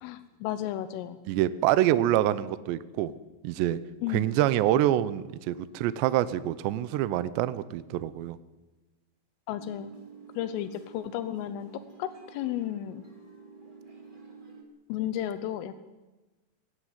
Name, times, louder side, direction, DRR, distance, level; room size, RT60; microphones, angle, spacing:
voice 1, 0.0-1.2 4.0-4.3 9.5-9.9 10.4-13.1 14.9-15.7, left 11 dB, 85° left, 11 dB, 3.5 m, -33 dB
voice 2, 1.3-3.1 3.4-3.8 4.1-8.4, right 13 dB, 75° right, 14 dB, 2.7 m, -26 dB
sound 1, 9.6-14.6, right 4 dB, 25° right, 1.1 m, -50 dB
20.0 x 15.5 x 9.5 m, 1.1 s
omnidirectional pair, 5.7 m